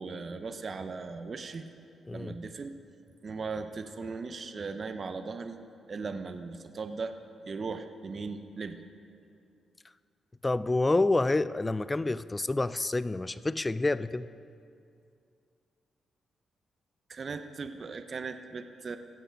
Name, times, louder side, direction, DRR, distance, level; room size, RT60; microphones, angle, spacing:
voice 1, 0.0-1.6 2.1-2.7 3.2-5.6 5.9-7.1 7.5-8.8 17.1-19.0, right 4 dB, 50° right, 9 dB, 0.7 m, -38 dB
voice 2, 10.4-14.3, left 2 dB, 20° left, 16 dB, 0.4 m, -28 dB
16.5 x 7.7 x 5.2 m, 2.4 s
cardioid pair, 65°, 0 cm